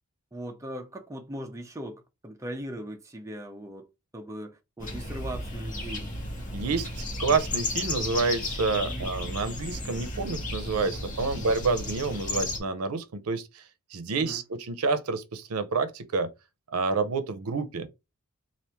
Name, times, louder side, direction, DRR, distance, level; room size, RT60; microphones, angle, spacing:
voice 1, 0.3-3.9 4.1-6.1 8.9-9.1 11.3-11.5 14.2-14.5, equal, 15° right, 0.5 m, -39 dB
sound 1, 4.8-12.6, left 2 dB, 35° left, 1.0 m, -34 dB
voice 2, 6.5-13.6 13.9-16.3 16.7-17.9, right 4 dB, 85° right, 0.6 m, -28 dB
3.4 x 2.5 x 4.3 m
head